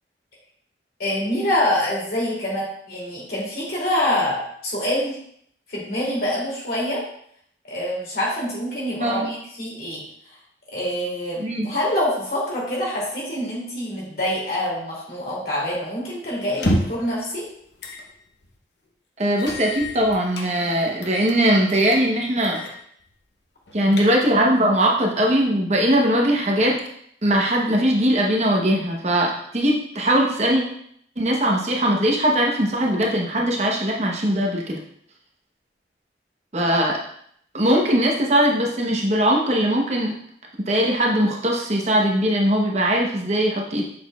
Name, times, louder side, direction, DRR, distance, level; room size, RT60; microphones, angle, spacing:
voice 1, 1.0-5.2 5.7-7.0 7.6-10.0 10.3-10.4 10.7-17.5, left 1 dB, 55° left, -5 dB, 2.6 m, -25 dB
voice 2, 9.0-9.3 11.4-11.7 19.2-22.6 23.7-26.8 27.2-30.6 31.2-34.8 36.5-37.0 37.5-40.1 40.7-43.8, right 1 dB, 40° right, 0 dB, 0.9 m, -20 dB
sound 1, 16.5-17.1 17.8-18.0 18.4-18.5 19.4-20.5 21.0-21.4 21.7-22.0 22.4-22.8 23.1-23.2 23.7-24.4, left 1 dB, 80° left, 0.9 m, -28 dB
6.6 x 6.2 x 2.3 m, 0.67 s
head